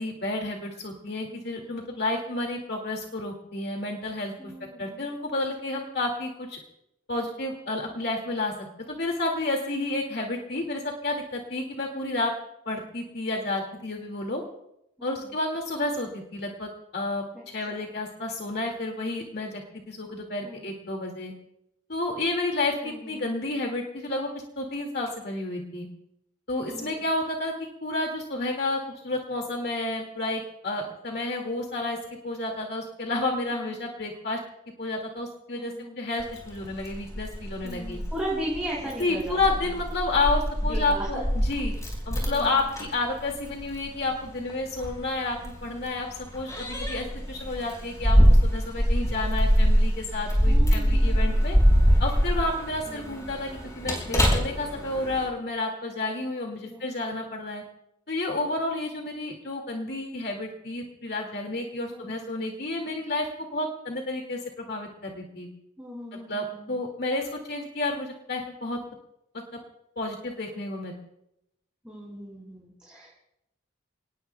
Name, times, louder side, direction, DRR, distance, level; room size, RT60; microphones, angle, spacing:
voice 1, 0.0-4.3 4.8-6.6 7.1-8.5 8.9-12.3 12.7-14.4 15.0-19.6 19.9-21.3 21.9-24.3 24.6-25.9 26.5-27.5 27.8-32.0 32.2-34.4 34.8-38.0 39.0-41.7 42.1-51.6 52.0-57.6 58.1-65.5 66.1-68.8 70.0-71.0, left 2 dB, 50° left, 1 dB, 2.1 m, -30 dB
voice 2, 1.2-1.9 4.4-5.1 7.9-8.1 15.0-15.2 17.7-17.8 20.4-20.6 22.8-23.3 26.7-27.1 33.5-33.7 35.5-36.0 37.6-39.8 40.6-41.2 42.2-42.6 50.5-51.3 52.9-53.3 56.6-56.8 61.7-62.1 65.8-66.8 71.8-73.1, right 1 dB, 5° right, -6 dB, 5.7 m, -38 dB
Keys jangling, 36.2-55.3, equal, 15° left, 4.5 m, -24 dB
29.5 x 19.5 x 2.3 m, 0.82 s
head